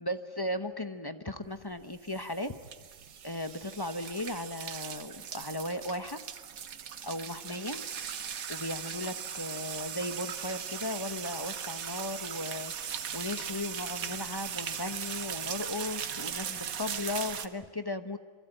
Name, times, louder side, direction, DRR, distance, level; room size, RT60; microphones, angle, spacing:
voice 1, 0.0-2.5 3.2-6.2 7.0-7.9 8.5-18.2, left 1 dB, 20° left, 9 dB, 1.0 m, -36 dB
sound 1, 1.8-17.5, right 8 dB, 85° right, 1.5 m, -39 dB
27.5 x 23.5 x 9.0 m, 1.5 s
omnidirectional pair, 1.4 m